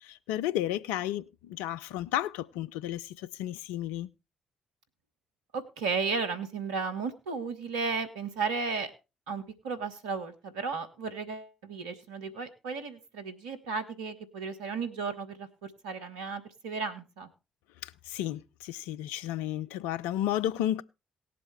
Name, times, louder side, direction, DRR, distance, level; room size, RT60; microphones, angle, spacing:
voice 1, 0.0-4.1 17.8-20.8, left 12 dB, 80° left, 0.5 m, -32 dB
voice 2, 5.5-8.9 9.3-17.3, right 4 dB, 85° right, 1.4 m, -34 dB
18.0 x 7.6 x 3.3 m
hypercardioid pair, 40°, 3 cm